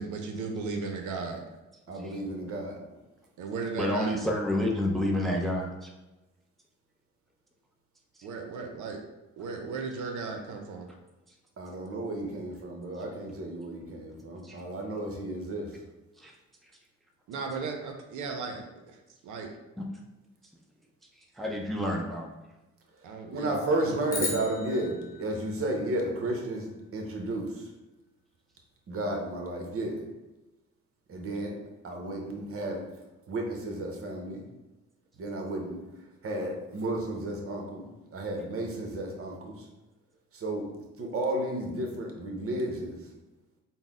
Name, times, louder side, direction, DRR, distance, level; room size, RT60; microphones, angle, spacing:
voice 1, 0.0-1.4 3.4-4.2 8.2-9.0 9.4-10.9 17.3-18.7 19.2-19.5 23.0-24.2, right 4 dB, 80° right, 3 dB, 0.6 m, -36 dB
voice 2, 1.9-2.8 11.6-15.8 23.3-27.7 28.9-30.0 31.1-31.6 31.8-32.8 33.3-34.4 35.2-35.8 36.2-39.7 40.3-40.7 41.0-43.1, right 1 dB, 50° right, 1 dB, 0.9 m, -33 dB
voice 3, 3.8-5.9 8.1-8.3 11.3-11.4 13.0-13.1 14.4-14.6 16.1-16.3 16.6-16.7 19.8-19.9 21.0-22.4, left 1 dB, ahead, 0 dB, 0.5 m, -30 dB
sound 1, 24.1-26.5, left 2 dB, 30° left, 1.0 m, -37 dB
4.0 x 2.0 x 3.6 m, 1.1 s
cardioid pair, 90°, 30 cm